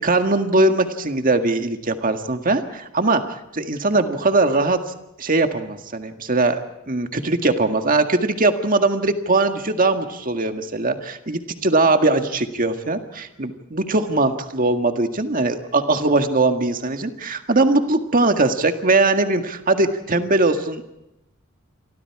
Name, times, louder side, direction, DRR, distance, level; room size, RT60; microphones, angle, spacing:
voice 1, 0.0-4.8 5.2-6.6 6.9-20.9, right 2 dB, 40° right, 7 dB, 1.8 m, -20 dB
29.0 x 24.5 x 4.8 m, 0.87 s
head